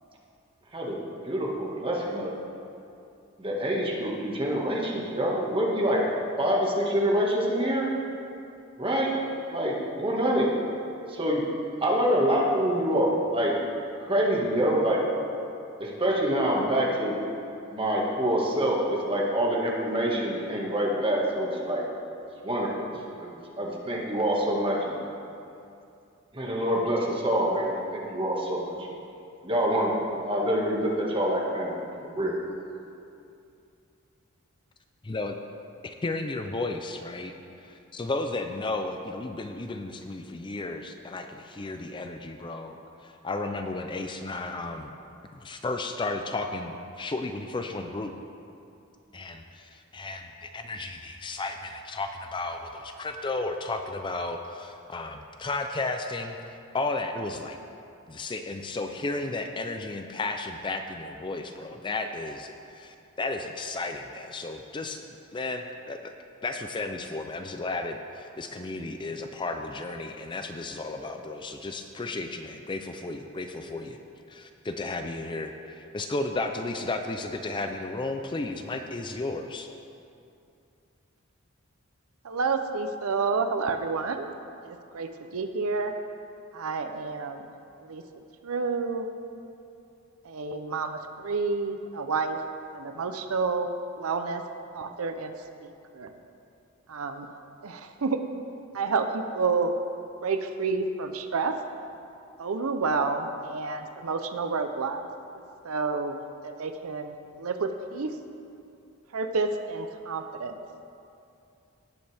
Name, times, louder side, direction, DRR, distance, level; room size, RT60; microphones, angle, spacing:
voice 1, 1.2-2.3 3.4-6.0 6.4-7.9 8.8-9.1 9.5-10.5 11.1-11.4 11.8-13.5 14.0-15.0 15.8-17.2 17.7-21.8 22.4-22.9 23.2-23.3 23.6-25.0 26.3-28.7 29.4-29.9 30.2-32.4, equal, 25° right, -3 dB, 1.8 m, -26 dB
voice 2, 35.0-35.4 35.8-37.3 37.9-42.8 43.2-44.9 45.4-48.1 49.1-49.6 49.9-56.3 56.7-57.6 58.1-65.0 65.3-66.1 66.4-74.0 74.3-79.7, left 2 dB, 20° left, 6 dB, 0.4 m, -33 dB
voice 3, 82.2-84.3 84.6-85.9 86.5-87.5 87.8-88.0 88.4-89.1 90.2-92.4 92.7-93.7 94.0-94.4 94.7-95.3 95.6-96.1 96.9-97.3 97.6-98.2 98.7-99.8 100.2-101.5 102.4-105.0 105.6-108.2 109.1-110.6, right 4 dB, 80° right, 7 dB, 0.6 m, -29 dB
18.0 x 8.0 x 3.5 m, 2.6 s
head